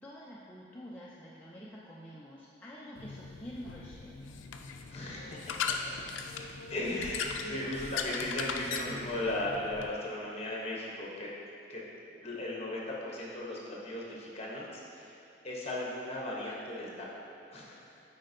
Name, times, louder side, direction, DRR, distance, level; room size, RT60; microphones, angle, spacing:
voice 1, 0.0-4.3 7.4-7.7, equal, 10° left, -7 dB, 0.4 m, -47 dB
sound 1, 3.0-9.9, left 5 dB, 80° left, 0.4 m, -39 dB
voice 2, 4.9-5.8 6.2-11.3 11.7-11.8 12.2-17.2 17.5-17.9, left 1 dB, 35° left, -4 dB, 1.0 m, -37 dB
9.2 x 4.3 x 2.7 m, 2.8 s
head